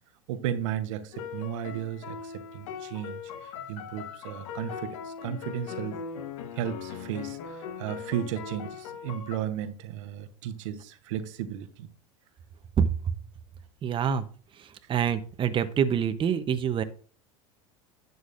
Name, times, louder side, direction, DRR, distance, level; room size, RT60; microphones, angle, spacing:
voice 1, 0.3-6.0 6.6-11.9, right 10 dB, 70° right, 1.1 m, -34 dB
sound 1, 1.1-9.4, left 7 dB, 75° left, 1.2 m, -40 dB
voice 2, 13.8-14.3 14.9-16.8, right 8 dB, 30° right, 0.8 m, -25 dB
11.0 x 8.1 x 2.6 m
hypercardioid pair, 90°, 17 cm